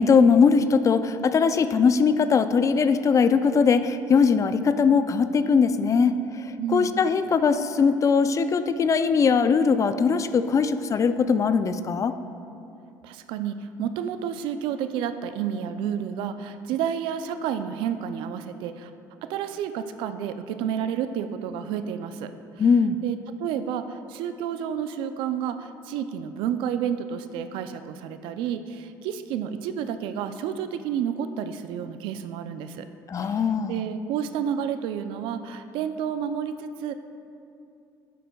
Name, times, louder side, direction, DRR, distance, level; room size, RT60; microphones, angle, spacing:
voice 1, 0.0-12.1 22.6-23.0 33.1-33.8, left 5 dB, 40° left, 11 dB, 0.5 m, -21 dB
voice 2, 6.6-7.0 13.0-18.9 19.2-22.6 23.0-32.9 33.2-33.4 33.7-36.9, right 8 dB, 70° right, 10 dB, 0.5 m, -30 dB
11.5 x 10.0 x 2.3 m, 2.6 s
hypercardioid pair, 70°, 9 cm